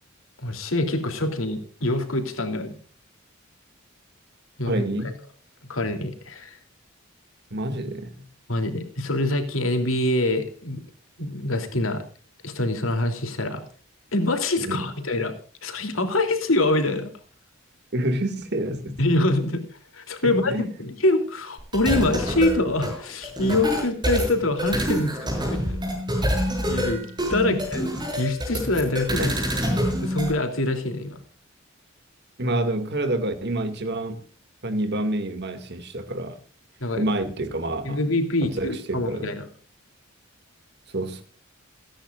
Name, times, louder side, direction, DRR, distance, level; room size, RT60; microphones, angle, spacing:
voice 1, 0.4-2.8 4.6-4.8 5.7-6.6 8.5-10.8 11.2-12.0 12.4-13.6 14.1-15.3 15.6-17.1 19.0-19.6 19.9-25.8 26.7-29.3 29.7-31.2 36.8-37.0 37.8-39.4, left 2 dB, 80° left, 3.1 m, -25 dB
voice 2, 4.7-5.2 7.5-8.3 14.6-14.9 17.9-19.0 20.2-20.7 27.4-27.6 29.2-29.4 32.4-34.2 34.6-36.4 36.9-38.0 38.4-39.3 40.9-41.2, right 1 dB, 55° right, 2.2 m, -28 dB
sound 1, 21.6-30.3, equal, 20° right, 6.9 m, -26 dB
28.5 x 10.0 x 2.5 m
head